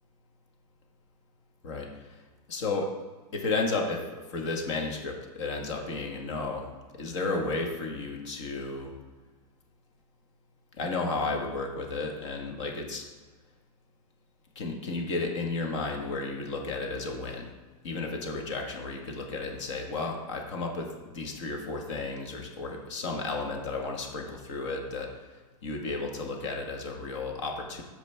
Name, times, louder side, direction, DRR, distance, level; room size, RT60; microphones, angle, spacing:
voice 1, 1.6-2.9 3.3-8.9 10.8-13.0 14.5-17.5 17.8-27.8, left 3 dB, 50° left, 2 dB, 1.6 m, -33 dB
13.0 x 5.1 x 3.5 m, 1.3 s
supercardioid pair, 175°, 20 cm